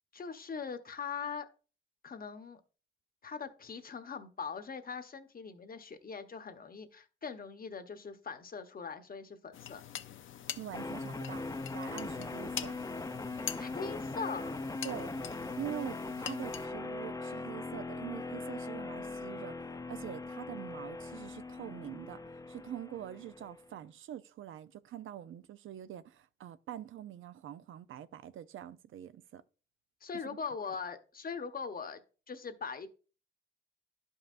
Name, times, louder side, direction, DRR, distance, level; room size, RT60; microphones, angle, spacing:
voice 1, 0.1-1.5 2.0-2.6 3.2-9.8 13.6-14.6 30.0-32.0 32.3-32.9, left 5 dB, 45° left, 0.9 m, -41 dB
dish and pouring, 9.5-16.7, left 10 dB, 80° left, 0.5 m, -45 dB
voice 2, 10.6-11.4 11.7-12.8 14.8-15.2 15.6-22.2 22.5-29.4 30.1-30.4, right 11 dB, 85° right, 0.4 m, -44 dB
sound 1, 10.7-23.7, left 3 dB, 15° left, 0.5 m, -40 dB
11.5 x 5.4 x 2.5 m
cardioid pair, 85°, 20 cm